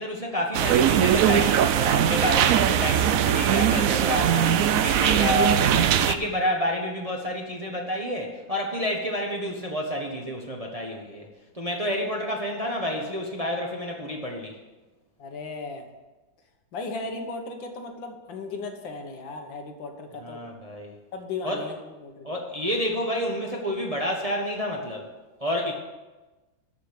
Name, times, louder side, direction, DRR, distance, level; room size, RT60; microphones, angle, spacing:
voice 1, 0.0-11.3 11.5-14.5 20.2-20.9 21.4-21.6 22.2-25.1 25.4-25.7, equal, 25° right, 0 dB, 1.0 m, -29 dB
sound 1, 0.5-6.1, right 9 dB, 75° right, 0.7 m, -21 dB
voice 2, 15.2-15.9 16.7-20.4 21.1-22.4, left 3 dB, 75° left, 4 dB, 2.0 m, -36 dB
12.5 x 5.1 x 8.2 m, 1.2 s
omnidirectional pair, 2.1 m